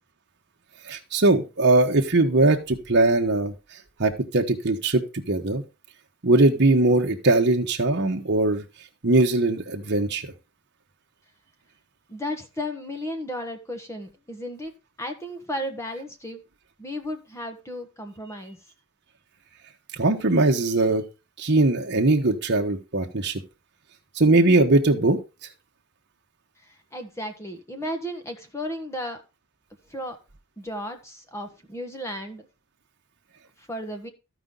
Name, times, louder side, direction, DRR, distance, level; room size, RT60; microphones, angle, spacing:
voice 1, 0.9-3.5 4.0-5.6 6.2-8.6 9.0-10.3 20.0-21.0 21.4-23.4 24.1-25.2, right 2 dB, 50° right, 2 dB, 1.1 m, -20 dB
voice 2, 12.1-14.7 15.0-16.4 16.8-18.6 26.9-29.2 29.9-30.2 30.6-32.5 33.6-34.1, left 1 dB, 15° left, 4 dB, 1.1 m, -34 dB
14.5 x 5.0 x 3.8 m, 0.28 s
head